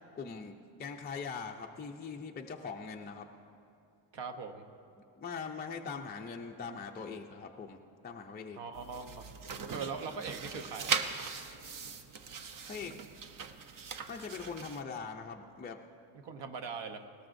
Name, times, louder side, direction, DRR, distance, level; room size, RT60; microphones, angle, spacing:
voice 1, 0.1-0.5 0.8-3.3 5.2-8.6 12.7-13.0 14.1-15.8, left 5 dB, 25° left, 1 dB, 0.3 m, -41 dB
voice 2, 4.1-4.7 8.6-9.2 9.7-11.0 16.2-17.0, right 5 dB, 65° right, 7 dB, 1.0 m, -40 dB
sound 1, 8.7-14.8, right 5 dB, 45° right, 0.6 m, -39 dB
19.5 x 17.5 x 2.6 m, 2.5 s
wide cardioid pair, 180°, 45 cm